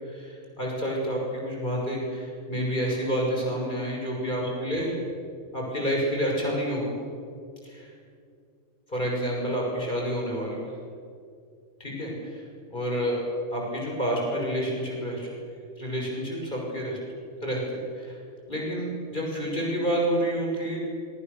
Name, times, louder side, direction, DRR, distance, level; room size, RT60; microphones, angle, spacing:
voice 1, 0.1-4.9 5.5-6.9 7.6-7.9 8.9-10.6 11.8-12.4 12.7-13.2 13.5-15.3 15.8-17.0 17.4-18.2 18.5-20.8, equal, 40° left, -2 dB, 6.6 m, -29 dB
26.5 x 24.5 x 7.0 m, 2.4 s
omnidirectional pair, 1.3 m